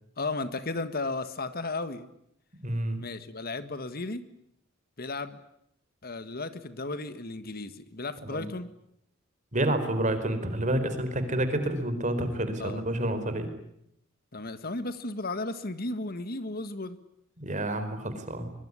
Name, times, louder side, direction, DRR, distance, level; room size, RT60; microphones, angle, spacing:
voice 1, 0.2-2.1 3.0-4.3 5.0-5.4 6.0-8.7 12.6-12.8 14.3-17.0, left 2 dB, 45° left, 12 dB, 1.7 m, -34 dB
voice 2, 2.6-3.0 8.2-8.4 9.5-13.5 17.4-18.5, right 1 dB, 35° right, 9 dB, 4.7 m, -29 dB
24.0 x 23.0 x 9.8 m, 0.74 s
head